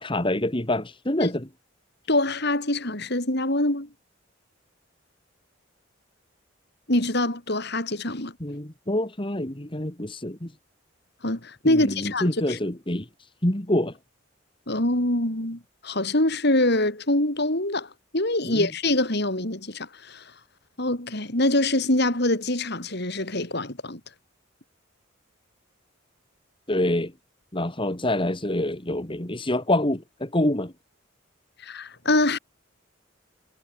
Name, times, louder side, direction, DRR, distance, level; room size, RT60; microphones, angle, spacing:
voice 1, 0.0-1.5 8.4-10.5 11.6-13.1 13.4-13.9 18.5-18.7 26.7-27.1 27.5-30.7, left 1 dB, 25° left, 2.2 m, -26 dB
voice 2, 2.1-3.9 6.9-8.3 11.2-12.6 14.7-20.2 20.8-24.0 31.6-32.4, left 1 dB, 55° left, 4.8 m, -24 dB
head